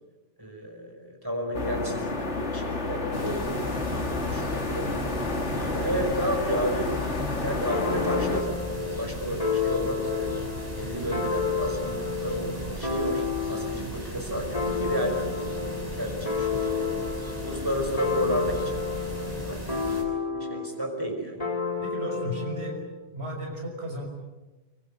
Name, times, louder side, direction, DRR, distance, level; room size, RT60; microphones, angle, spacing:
voice 1, 0.4-4.9 5.5-6.9 7.4-10.3 10.8-16.9 17.4-18.8 19.2-19.8 20.3-21.5, equal, 20° right, 2 dB, 5.3 m, -32 dB
sound 1, 1.5-8.4, left 3 dB, 90° left, 2.7 m, -30 dB
sound 2, 3.1-20.0, equal, 35° right, 6.1 m, -37 dB
sound 3, 7.7-13.9 14.5-20.8 21.4-22.9, left 5 dB, 30° left, 4.3 m, -30 dB
voice 2, 21.8-22.8 23.1-24.1, equal, 65° right, 1 dB, 6.1 m, -34 dB
25.5 x 23.5 x 8.6 m, 1.1 s
omnidirectional pair, 1.2 m